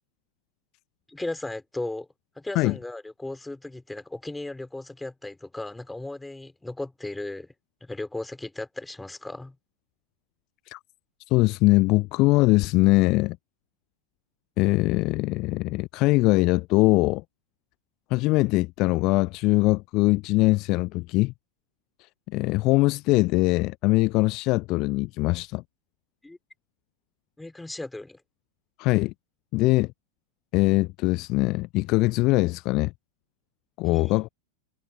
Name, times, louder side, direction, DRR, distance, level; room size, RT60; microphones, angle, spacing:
voice 1, 1.1-2.1 2.4-7.5 7.8-9.6 26.2-26.4 27.4-28.2 33.8-34.2, left 2 dB, 5° left, 4.2 m, -36 dB
voice 2, 11.3-13.4 14.6-17.2 18.1-21.3 22.3-25.6 28.8-29.1 29.5-29.9 30.5-32.9 33.8-34.3, left 22 dB, 40° left, 0.5 m, -22 dB
figure-of-eight pair, 90°, 0 cm